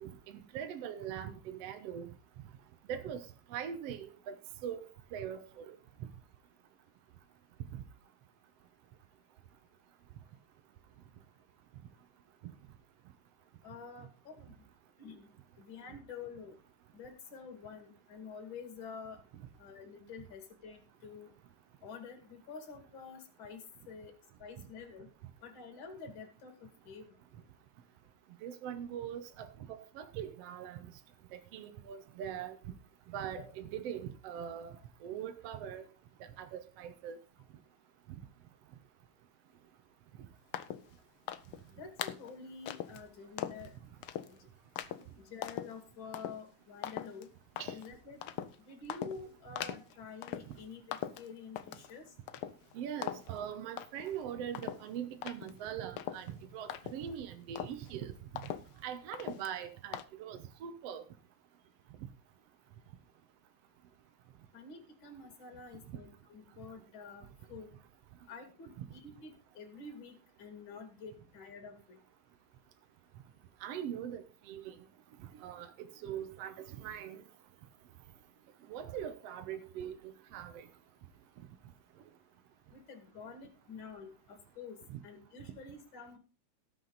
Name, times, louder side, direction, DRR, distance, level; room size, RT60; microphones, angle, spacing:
voice 1, 0.0-2.1 2.9-4.4 4.6-6.1 7.7-7.8 12.4-12.5 28.4-30.9 31.5-32.6 33.1-34.8 35.0-35.8 36.4-37.2 47.6-47.8 50.5-50.6 52.7-58.1 58.8-61.0 65.9-66.0 68.8-68.9 73.6-74.8 75.3-77.2 78.7-80.7 84.9-85.0, right 9 dB, 65° right, 1.9 m, -42 dB
voice 2, 13.6-14.6 15.0-15.3 15.6-16.5 16.9-19.2 19.6-21.3 21.8-24.1 24.4-25.1 25.4-26.6 26.8-27.2 33.4-33.5 41.7-43.7 45.2-47.3 47.7-48.2 48.7-52.1 64.5-67.7 68.3-72.0 82.7-84.8 85.0-86.2, left 5 dB, 45° left, 2.7 m, -48 dB
sound 1, 40.5-40.9 41.3-41.6 42.0-42.3 42.7-43.0 43.4-43.7 44.0-44.3 44.8-45.0 45.4-45.7 46.1-46.4 46.8-47.2 47.6-47.9 48.2-48.6 48.9-49.2 49.6-49.9 50.2-50.6 50.9-51.9 52.3-52.7 53.0-53.4 53.8-54.2 54.5-57.2 57.6-57.9 58.4-58.8 59.1-59.6 59.9-60.0, left 11 dB, 85° left, 1.2 m, -40 dB
18.5 x 6.1 x 4.0 m
omnidirectional pair, 3.3 m